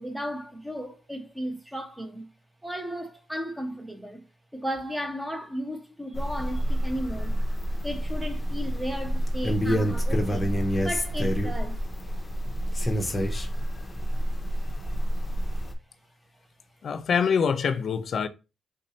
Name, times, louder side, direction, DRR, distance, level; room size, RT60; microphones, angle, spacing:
voice 1, 0.0-2.3 2.6-4.2 4.5-7.4 7.8-10.5 10.8-11.8, equal, 10° right, 1.0 m, -35 dB
sound 1, 6.1-15.7, equal, 20° left, 0.8 m, -28 dB
voice 2, 16.8-18.3, left 6 dB, 60° left, 0.5 m, -25 dB
3.8 x 2.7 x 4.3 m
cardioid pair, 90°, 0 cm